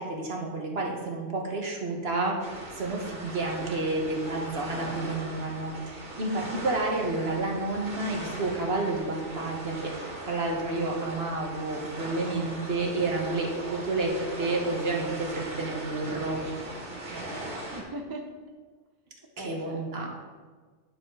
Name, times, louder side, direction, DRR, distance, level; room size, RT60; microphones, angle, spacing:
voice 1, 0.0-2.4 2.7-16.4 19.4-20.1, right 2 dB, 60° right, 0 dB, 1.4 m, -30 dB
sound 1, 2.4-17.8, right 1 dB, 75° right, 2.3 m, -39 dB
voice 2, 17.1-18.3 19.2-20.1, right 1 dB, 25° right, 3 dB, 0.6 m, -41 dB
9.6 x 5.4 x 4.7 m, 1.4 s
omnidirectional pair, 1.2 m